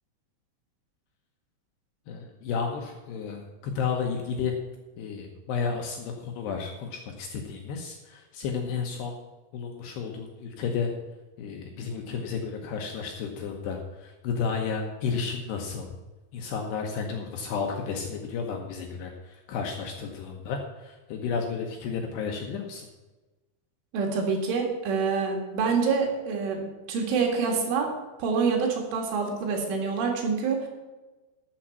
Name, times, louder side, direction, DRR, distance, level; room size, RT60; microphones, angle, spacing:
voice 1, 2.1-4.6 5.0-9.1 9.5-10.9 11.4-16.0 16.3-22.9, left 5 dB, 75° left, 2 dB, 2.7 m, -32 dB
voice 2, 23.9-27.9 28.2-30.7, right 5 dB, 75° right, 1 dB, 4.3 m, -26 dB
13.0 x 7.5 x 5.9 m, 1.2 s
omnidirectional pair, 5.8 m